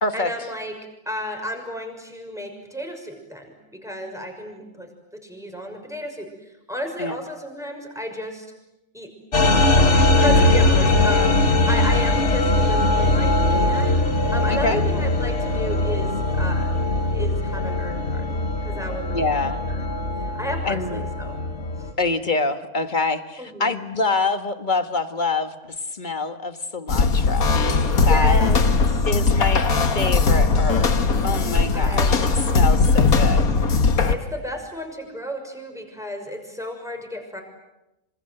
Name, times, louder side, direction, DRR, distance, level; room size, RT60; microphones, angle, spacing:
voice 1, 0.1-0.7 1.1-8.5 8.9-9.1 9.4-13.9 14.3-16.8 17.1-19.9 20.3-21.4 21.8-21.9 23.4-23.8 28.0-28.6 28.9-29.1 31.7-32.5 34.0-37.4, equal, ahead, 3 dB, 6.1 m, -33 dB
sound 1, 9.3-21.9, left 2 dB, 50° left, 2.5 m, -20 dB
voice 2, 14.5-14.8 19.1-19.6 20.6-21.0 22.0-27.5 28.0-28.4 29.1-33.5, left 3 dB, 35° left, 9 dB, 1.8 m, -26 dB
sound 2, 26.9-34.1, left 4 dB, 80° left, 2.1 m, -19 dB
27.0 x 27.0 x 7.9 m, 0.93 s
omnidirectional pair, 1.5 m